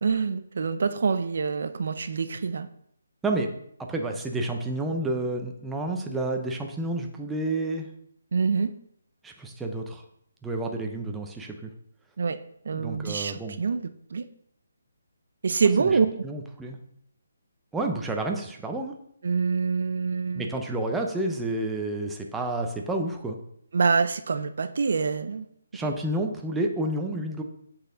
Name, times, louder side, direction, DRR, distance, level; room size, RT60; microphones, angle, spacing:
voice 1, 0.0-2.7 8.3-8.7 12.2-12.4 12.7-14.3 15.4-16.1 19.2-20.5 23.7-25.5, right 5 dB, 60° right, 12 dB, 0.4 m, -25 dB
voice 2, 3.8-7.9 9.2-10.0 10.4-11.7 12.7-13.6 15.8-15.9 16.2-16.8 17.7-18.9 20.3-23.4 25.7-27.4, right 2 dB, 5° right, 2 dB, 0.6 m, -30 dB
7.9 x 4.2 x 3.8 m, 0.69 s
hypercardioid pair, 160°, 0 cm